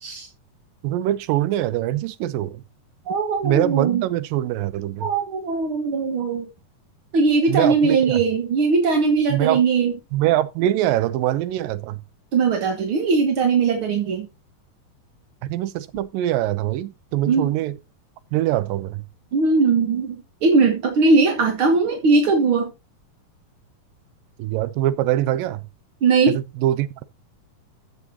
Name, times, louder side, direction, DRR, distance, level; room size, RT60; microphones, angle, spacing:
voice 1, 0.8-2.6 3.4-5.1 7.5-8.2 9.3-9.6 10.1-12.0 15.4-17.8 18.3-19.0 24.4-25.6 26.3-27.0, right 14 dB, 80° right, 2.4 m, -23 dB
voice 2, 3.1-4.0 5.0-6.5 7.1-9.9 12.3-14.3 17.3-17.5 19.3-22.7 26.0-26.4, right 4 dB, 55° right, 1.6 m, -20 dB
14.5 x 7.5 x 2.8 m
omnidirectional pair, 4.1 m